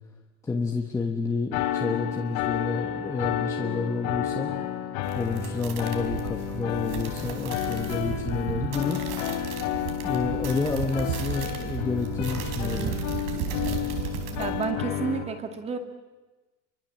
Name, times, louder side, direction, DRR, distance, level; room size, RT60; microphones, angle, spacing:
voice 1, 0.5-4.5 5.1-9.0 10.0-12.9, left 4 dB, 10° left, 1 dB, 1.2 m, -29 dB
sound 1, 1.5-15.2, left 10 dB, 65° left, 3.8 m, -31 dB
sound 2, 5.0-14.6, right 7 dB, 75° right, 4.5 m, -34 dB
voice 2, 14.3-15.8, right 5 dB, 15° right, 6 dB, 2.2 m, -30 dB
28.0 x 24.0 x 7.4 m, 1.2 s
cardioid pair, 170°, 36 cm